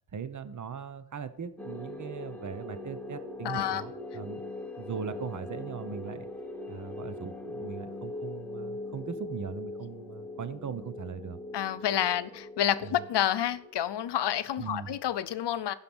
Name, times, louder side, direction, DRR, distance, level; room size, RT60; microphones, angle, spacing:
voice 1, 0.1-4.4 4.8-6.3 6.7-11.4 12.8-13.0 14.6-15.0, right 6 dB, 45° right, 0.9 m, -39 dB
sound 1, 1.6-14.4, left 2 dB, 5° left, 1.2 m, -41 dB
voice 2, 3.4-3.8 11.5-15.7, left 11 dB, 75° left, 0.7 m, -29 dB
15.0 x 5.8 x 6.1 m
wide cardioid pair, 150°, 42 cm